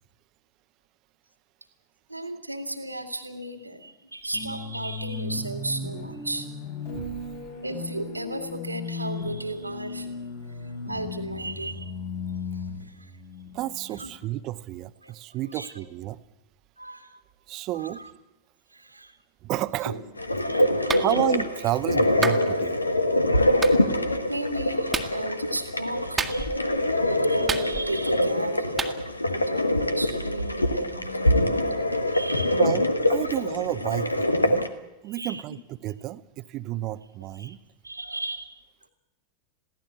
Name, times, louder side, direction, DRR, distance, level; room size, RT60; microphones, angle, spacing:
voice 1, 2.1-6.5 7.6-10.1 10.9-11.9 13.0-13.1 14.0-14.1 15.0-15.1 15.5-15.7 16.8-17.1 18.7-19.1 19.9-20.0 20.4-21.1 23.3-26.6 26.9-28.7 29.3-31.7 32.1-32.6 35.1-35.4 37.4-37.6 37.8-38.6, right 1 dB, 85° right, 7 dB, 2.2 m, -35 dB
sound 1, 4.3-14.2, left 3 dB, 60° left, 7.6 m, -36 dB
voice 2, 6.9-7.2 13.5-16.2 17.5-18.0 19.4-20.0 21.0-22.8 32.5-34.7 35.0-37.6, right 15 dB, 40° right, 15 dB, 0.9 m, -31 dB
sound 2, 20.2-34.7, left 1 dB, 85° left, 1.3 m, -24 dB
Clapping, 20.9-21.1 22.2-22.4 23.6-23.8 24.9-25.1 26.2-26.6 27.5-28.0 28.8-29.0, right 5 dB, 15° right, 1.7 m, -29 dB
22.0 x 16.5 x 8.4 m, 0.97 s
figure-of-eight pair, 90°, 0 cm